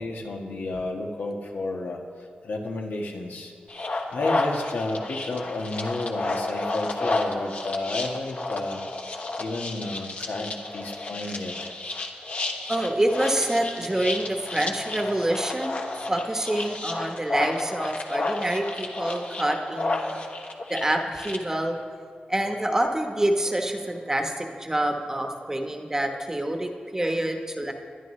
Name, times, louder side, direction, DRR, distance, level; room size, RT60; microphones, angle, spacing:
voice 1, 0.0-2.0 2.4-3.5 4.1-8.8 9.4-11.7, left 2 dB, 85° left, 1 dB, 1.4 m, -32 dB
sound 1, 3.7-21.4, left 2 dB, 50° left, 1.1 m, -31 dB
voice 2, 12.7-20.2 20.7-21.9 22.3-27.7, right 1 dB, 15° right, 3 dB, 1.0 m, -27 dB
20.5 x 11.0 x 3.2 m, 2.1 s
wide cardioid pair, 130°, 3 cm